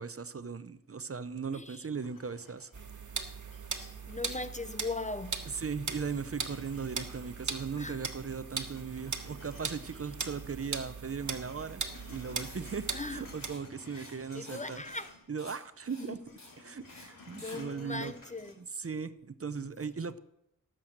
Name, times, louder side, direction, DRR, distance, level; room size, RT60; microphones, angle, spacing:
voice 1, 0.0-2.7 5.5-11.8 12.1-14.8 15.3-16.2 16.6-18.1 18.6-20.2, right 5 dB, 45° right, 0.7 m, -38 dB
voice 2, 1.5-1.9 4.1-5.5 7.8-8.0 12.9-13.2 13.9-15.1 16.0-16.3 16.9-18.6, left 3 dB, 25° left, 0.5 m, -40 dB
sound 1, 2.0-4.3 4.7-7.9 8.2-10.7 11.0-15.3 15.6-18.5, left 3 dB, 90° left, 2.6 m, -54 dB
sound 2, 2.7-13.6, right 5 dB, 65° right, 1.4 m, -40 dB
Writing, 12.4-12.6 12.9-13.1 13.4-13.6 13.9-14.6 14.9-15.1 15.4-15.6 15.9-16.1 16.4-16.6 16.9-17.1 17.4-17.6, left 2 dB, 60° left, 4.2 m, -51 dB
18.0 x 7.7 x 6.5 m
wide cardioid pair, 90°, 32 cm